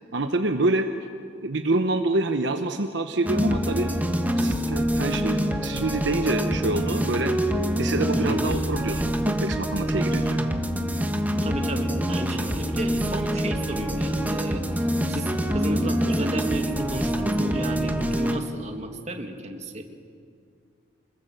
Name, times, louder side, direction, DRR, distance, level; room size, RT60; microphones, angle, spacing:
voice 1, 0.1-1.1 1.4-3.9 4.4-7.3 7.8-10.4, right 2 dB, 65° right, 6 dB, 1.1 m, -26 dB
sound 1, 3.2-18.4, equal, 10° right, 1.3 m, -25 dB
voice 2, 11.4-19.8, right 1 dB, 35° right, 4 dB, 2.0 m, -33 dB
26.0 x 21.0 x 7.8 m, 2.3 s
head